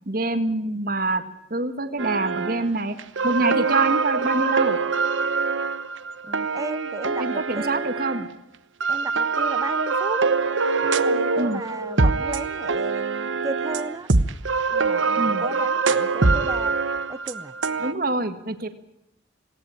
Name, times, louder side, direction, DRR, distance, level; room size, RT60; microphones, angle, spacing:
voice 1, 0.1-1.2 1.5-3.0 3.2-4.8 7.2-8.3 11.4-11.6 15.1-15.4 17.8-18.7, right 2 dB, 50° right, 9 dB, 1.6 m, -25 dB
sound 1, 2.0-2.7 3.0-8.3 8.8-17.9, right 4 dB, 80° right, 1.1 m, -24 dB
voice 2, 6.3-7.8 8.9-10.2 10.8-14.1 14.7-16.8 17.1-17.5, right 2 dB, 20° right, 16 dB, 0.7 m, -35 dB
18.5 x 18.0 x 8.8 m, 0.83 s
head